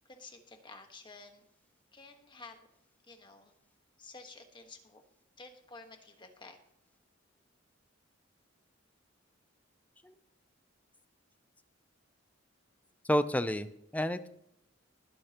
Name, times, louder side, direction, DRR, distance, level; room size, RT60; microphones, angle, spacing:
voice 1, 0.0-1.4 1.9-2.7 3.0-3.5 4.0-5.0 5.4-6.6, left 3 dB, 25° left, 5 dB, 1.4 m, -51 dB
voice 2, 13.0-14.3, equal, 10° left, 12 dB, 0.5 m, -30 dB
20.5 x 8.5 x 3.0 m, 0.78 s
head